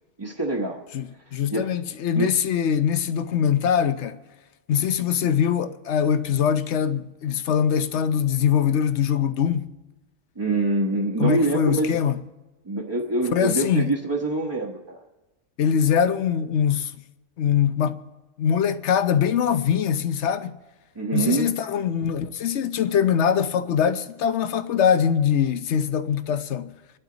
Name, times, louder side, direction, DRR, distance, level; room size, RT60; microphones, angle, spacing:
voice 1, 0.2-0.8 1.3-1.7 2.1-2.3 10.4-12.0 12.6-15.0 20.9-21.5, right 2 dB, 20° right, 1.1 m, -25 dB
voice 2, 0.9-4.2 4.7-9.7 11.2-12.2 13.3-13.9 15.6-16.9 17.4-18.0 18.4-20.5 21.1-26.7, left 8 dB, 65° left, 1.0 m, -22 dB
28.0 x 11.5 x 3.9 m
omnidirectional pair, 1.3 m